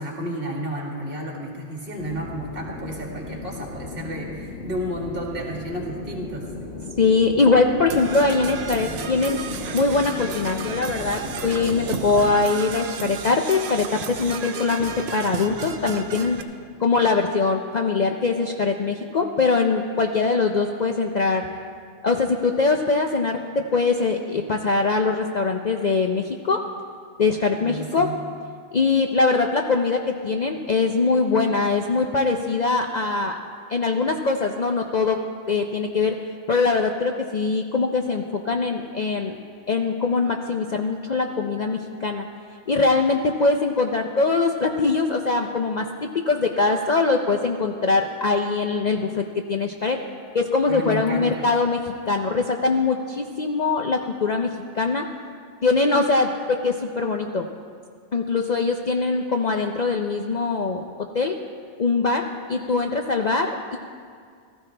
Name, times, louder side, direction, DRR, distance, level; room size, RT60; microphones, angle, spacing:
voice 1, 0.0-6.4 27.6-28.1 50.7-51.5, right 1 dB, 50° right, -2 dB, 2.2 m, -32 dB
sound 1, 2.0-12.5, left 3 dB, 80° left, 1.5 m, -36 dB
voice 2, 7.0-9.4 9.7-16.4 16.8-21.5 22.0-26.6 27.2-28.1 28.7-33.4 33.7-35.2 35.5-36.1 36.5-39.4 39.7-42.3 42.7-49.2 49.5-50.0 50.3-54.5 54.7-55.0 55.6-57.4 58.1-60.8 61.1-61.3 61.8-63.8, left 4 dB, 45° left, 3 dB, 0.6 m, -22 dB
Percussion / Brass instrument, 7.9-16.4, right 6 dB, 65° right, 0.9 m, -33 dB
16.0 x 14.0 x 3.3 m, 2.1 s
omnidirectional pair, 1.2 m